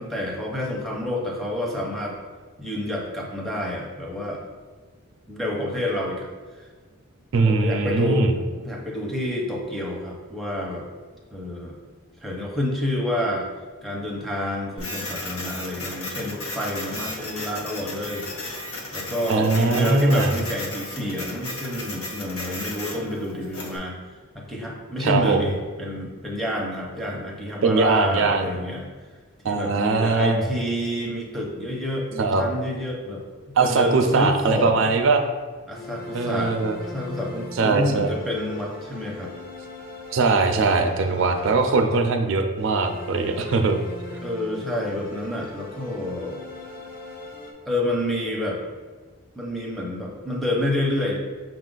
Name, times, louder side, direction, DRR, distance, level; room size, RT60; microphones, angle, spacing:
voice 1, 0.0-2.2 2.6-4.4 5.3-6.3 6.5-6.7 7.4-8.3 8.6-10.8 11.3-11.8 12.2-13.5 13.8-18.3 18.5-28.9 29.4-33.2 33.6-34.9 35.7-39.3 44.2-46.4 47.7-48.6 49.3-51.2, left 1 dB, ahead, -3 dB, 0.6 m, -28 dB
voice 2, 7.3-8.3 19.3-20.3 25.0-25.4 27.6-28.5 29.4-30.5 32.2-32.4 33.6-35.2 36.1-36.8 37.6-38.2 40.1-43.8, right 3 dB, 60° right, 5 dB, 0.4 m, -21 dB
Printer, 14.8-23.8, left 2 dB, 90° left, 0.9 m, -34 dB
sound 1, 35.7-42.2 42.6-47.5, left 2 dB, 45° left, 0.6 m, -40 dB
5.5 x 2.4 x 3.8 m, 1.5 s
head